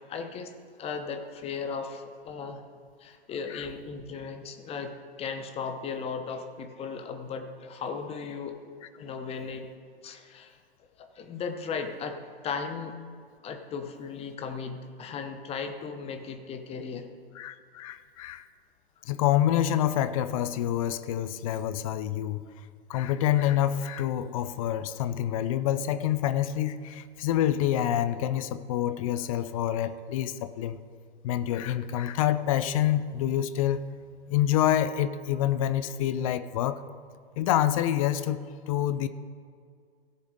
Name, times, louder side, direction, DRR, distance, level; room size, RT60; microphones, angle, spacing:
voice 1, 0.1-0.5 0.8-2.6 3.0-8.6 9.0-9.7 10.0-10.6 11.0-12.2 12.4-12.9 13.4-17.1, left 5 dB, 20° left, 6 dB, 0.9 m, -36 dB
voice 2, 17.3-18.5 19.0-22.4 22.9-30.8 31.2-33.9 34.3-36.8 37.4-39.1, left 11 dB, 35° left, 13 dB, 0.5 m, -27 dB
17.0 x 7.0 x 3.8 m, 2.2 s
figure-of-eight pair, 105°, 31 cm